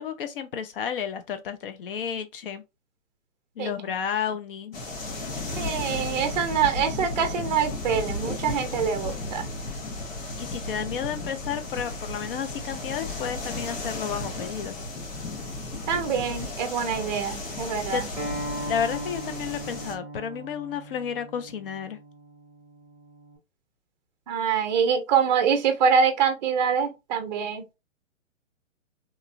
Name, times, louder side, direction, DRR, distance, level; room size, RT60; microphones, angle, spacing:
voice 1, 0.0-2.6 3.6-4.8 10.4-14.8 17.9-18.0 18.6-22.0, left 8 dB, 45° left, 0.5 m, -32 dB
sound 1, 4.7-19.9, left 2 dB, 75° left, 1.3 m, -34 dB
voice 2, 5.5-9.5 15.9-18.1 24.3-27.6, right 7 dB, 35° right, 0.5 m, -25 dB
Acoustic guitar, 18.2-23.4, right 1 dB, ahead, 0.8 m, -38 dB
3.0 x 2.3 x 2.5 m
hypercardioid pair, 145°, 39 cm